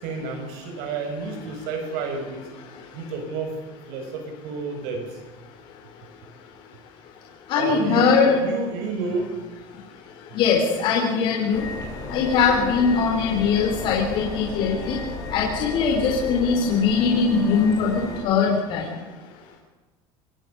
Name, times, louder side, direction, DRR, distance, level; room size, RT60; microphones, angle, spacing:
voice 1, 0.0-2.4 2.9-3.6 3.9-5.2 7.6-9.4, right 4 dB, 75° right, 5 dB, 6.9 m, -30 dB
voice 2, 7.5-8.4 10.3-11.6 12.1-15.0 15.3-15.5 15.7-18.8, left 5 dB, 50° left, -1 dB, 4.2 m, -21 dB
sound 1, 11.5-18.2, left 2 dB, 35° left, 7.4 m, -34 dB
25.0 x 20.0 x 7.1 m, 1.2 s
cardioid pair, 170°, 11 cm